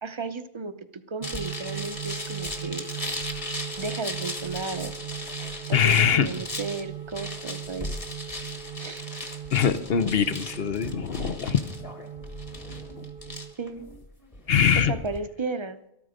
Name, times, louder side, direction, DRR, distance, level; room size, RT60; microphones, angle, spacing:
voice 1, 0.0-2.9 3.8-4.9 5.7-7.9 8.8-9.0 13.6-13.8 14.8-15.8, right 4 dB, 30° right, 11 dB, 0.7 m, -34 dB
sound 1, 1.2-15.2, left 2 dB, 30° left, 1.5 m, -37 dB
sound 2, 1.2-13.5, right 10 dB, 60° right, 0.9 m, -39 dB
voice 2, 5.7-6.3 9.5-11.6 14.5-14.9, left 7 dB, 65° left, 12 dB, 1.1 m, -22 dB
13.5 x 13.5 x 5.1 m, 0.80 s
omnidirectional pair, 1.1 m